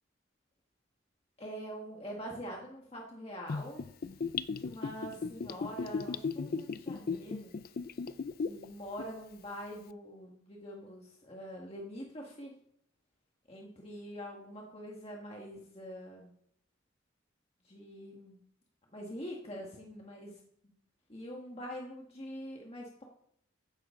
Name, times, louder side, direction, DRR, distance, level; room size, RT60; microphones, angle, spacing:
voice 1, 1.4-3.8 4.5-7.5 8.4-12.5 13.5-16.3 17.6-18.4 18.9-20.7 21.1-23.0, equal, 30° left, -1 dB, 1.6 m, -44 dB
Gurgling / Bathtub (filling or washing), 3.5-8.6 9.0-9.1, left 5 dB, 45° left, 0.4 m, -36 dB
15.0 x 10.5 x 3.8 m, 0.72 s
head